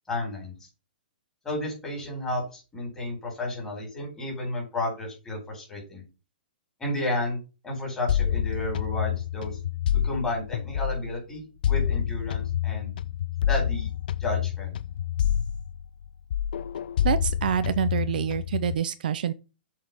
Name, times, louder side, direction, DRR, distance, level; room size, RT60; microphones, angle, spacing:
voice 1, 0.1-0.5 1.4-6.1 6.8-9.5 10.0-12.9 13.5-13.9 14.2-14.7, left 1 dB, 10° left, 4.2 m, -32 dB
sound 1, 8.1-11.2 11.6-16.0 16.3-18.7, left 10 dB, 60° left, 0.4 m, -28 dB
voice 2, 17.0-19.3, right 9 dB, 60° right, 0.5 m, -27 dB
7.4 x 4.7 x 5.4 m
hypercardioid pair, 165°, 5 cm